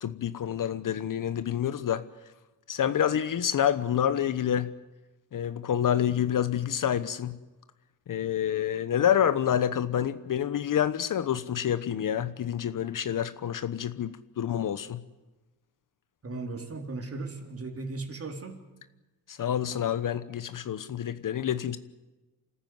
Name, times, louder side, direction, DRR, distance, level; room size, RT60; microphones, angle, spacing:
voice 1, 0.0-2.1 2.7-4.7 5.3-7.4 8.1-15.0 19.3-21.8, left 9 dB, 45° left, 1.1 m, -28 dB
voice 2, 16.2-18.6, right 3 dB, 30° right, 3.8 m, -37 dB
27.0 x 14.5 x 9.5 m
cardioid pair, 90°, 44 cm